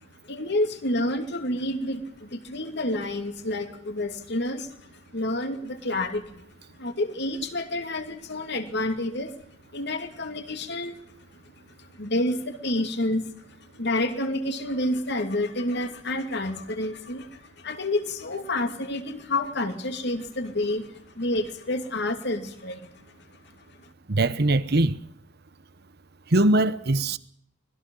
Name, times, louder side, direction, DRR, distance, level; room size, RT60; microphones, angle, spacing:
voice 1, 0.2-6.4 6.7-9.4 9.7-23.9, left 1 dB, 60° left, 2.6 m, -29 dB
voice 2, 24.1-25.0 26.3-27.2, right 2 dB, 55° right, 1.1 m, -21 dB
25.5 x 20.0 x 5.5 m
head